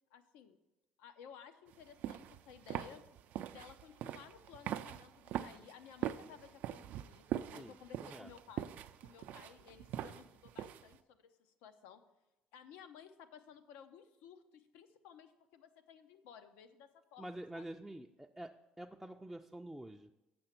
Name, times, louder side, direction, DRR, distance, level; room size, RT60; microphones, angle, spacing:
voice 1, 0.1-0.6 1.0-3.0 3.5-8.7 9.0-12.0 12.5-17.7, left 8 dB, 90° left, 9 dB, 0.6 m, -56 dB
sound 1, 1.7-11.0, right 11 dB, 70° right, 0.4 m, -43 dB
voice 2, 7.6-8.3 17.2-20.1, right 1 dB, 5° right, 1 dB, 0.4 m, -48 dB
7.8 x 5.9 x 5.8 m, 0.94 s
cardioid pair, 105°, 3 cm